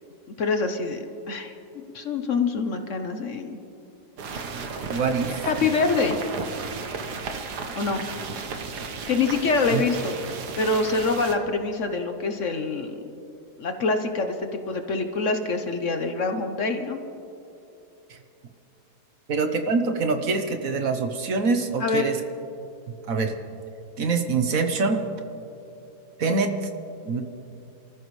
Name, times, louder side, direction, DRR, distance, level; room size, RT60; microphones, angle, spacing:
voice 1, 0.4-3.6 5.4-6.2 7.8-8.1 9.1-10.1 10.6-13.0 13.6-17.0 21.8-22.1, left 4 dB, 55° left, 6 dB, 1.1 m, -25 dB
sound 1, 4.2-11.4, right 4 dB, 80° right, 1.7 m, -34 dB
voice 2, 4.9-5.3 9.7-9.8 18.1-18.2 19.3-22.2 23.1-23.3 24.0-25.0 26.2-26.7 27.0-27.2, right 4 dB, 60° right, 6 dB, 1.3 m, -24 dB
29.0 x 14.5 x 3.2 m, 2.7 s
omnidirectional pair, 1.7 m